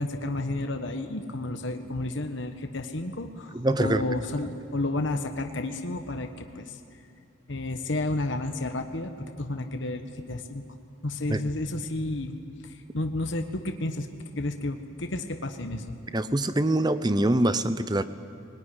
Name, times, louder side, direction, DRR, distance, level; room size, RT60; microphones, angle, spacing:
voice 1, 0.0-6.6 7.5-9.1 9.4-10.0 10.3-10.6 11.0-12.3 12.9-14.1 14.4-15.8, left 2 dB, 60° left, 6 dB, 1.2 m, -31 dB
voice 2, 3.5-4.0 11.3-11.4 16.1-18.0, right 1 dB, 20° right, 12 dB, 0.6 m, -24 dB
21.0 x 19.5 x 10.0 m, 2.5 s
head